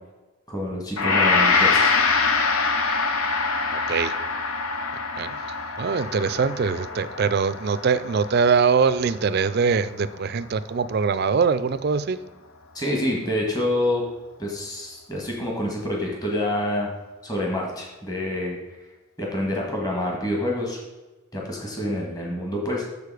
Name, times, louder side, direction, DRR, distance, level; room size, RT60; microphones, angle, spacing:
voice 1, 0.5-1.9 12.7-14.0 14.4-16.9 17.2-18.6 19.2-20.8 21.3-22.8, left 1 dB, 15° left, -1 dB, 1.5 m, -27 dB
Gong, 1.0-10.2, left 4 dB, 80° left, 0.9 m, -24 dB
voice 2, 3.7-4.1 5.2-5.4 5.8-12.2, right 5 dB, 45° right, 13 dB, 0.4 m, -22 dB
6.8 x 6.7 x 4.9 m, 1.1 s
head